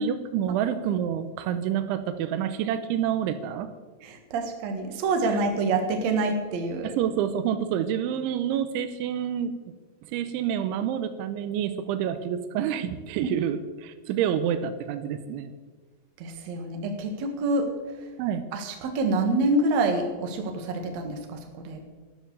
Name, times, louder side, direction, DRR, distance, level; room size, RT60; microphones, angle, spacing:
voice 1, 0.0-3.7 5.3-5.4 6.8-9.6 10.1-15.5 18.2-18.4, right 9 dB, 85° right, 10 dB, 3.2 m, -28 dB
voice 2, 4.0-6.9 13.2-13.3 16.2-17.7 18.5-21.8, right 2 dB, 60° right, 4 dB, 1.9 m, -27 dB
12.5 x 12.5 x 6.9 m, 1.3 s
omnidirectional pair, 5.5 m